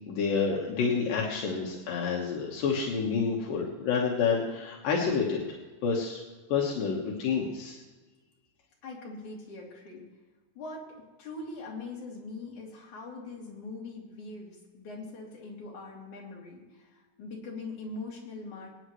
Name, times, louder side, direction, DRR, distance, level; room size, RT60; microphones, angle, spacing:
voice 1, 0.1-5.4 5.8-6.2 6.5-7.8, left 5 dB, 80° left, -2 dB, 3.1 m, -28 dB
voice 2, 8.8-10.1 10.6-18.7, left 3 dB, 60° left, -3 dB, 4.3 m, -42 dB
27.0 x 9.2 x 3.2 m, 1.3 s
omnidirectional pair, 3.9 m